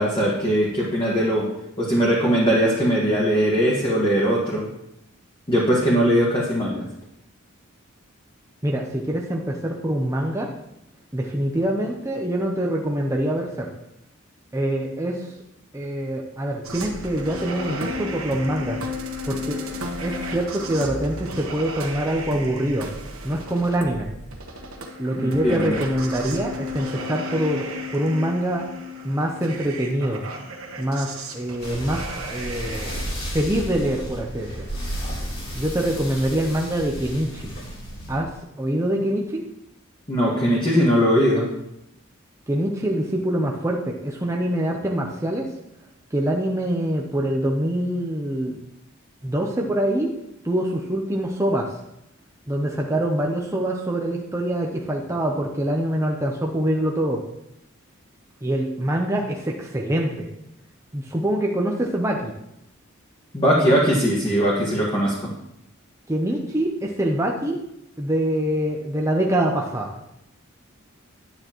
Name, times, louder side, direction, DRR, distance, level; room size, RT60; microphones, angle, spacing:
voice 1, 0.0-1.4 1.8-4.6 5.5-6.8 25.2-25.8 40.1-41.4 63.3-65.1, equal, 25° left, -5 dB, 1.7 m, -20 dB
voice 2, 8.6-10.5 11.1-13.7 14.5-15.3 15.7-18.8 19.3-19.7 20.0-22.9 23.2-24.1 25.0-28.7 29.0-30.2 30.8-32.0 32.3-33.0 33.3-34.7 35.5-37.5 38.1-38.3 38.6-39.4 42.5-45.5 46.1-48.6 49.2-50.1 50.4-51.7 52.5-57.2 58.4-60.3 60.9-62.3 66.1-67.6 68.0-70.0, right 1 dB, 15° right, -1 dB, 0.7 m, -25 dB
sound 1, 16.6-33.1, left 1 dB, 85° right, 1.2 m, -34 dB
sound 2, 31.6-38.2, equal, 55° left, 3.9 m, -33 dB
9.9 x 9.3 x 3.0 m, 0.82 s
head